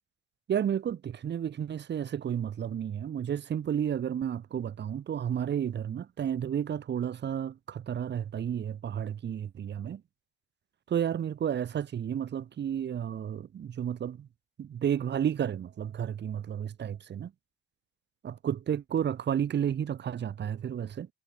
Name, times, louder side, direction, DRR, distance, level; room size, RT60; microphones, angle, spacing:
voice 1, 0.5-10.0 10.9-14.3 14.6-17.3 18.2-21.1, right 9 dB, 30° right, 0.7 m, -32 dB
hypercardioid pair, 70°, 38 cm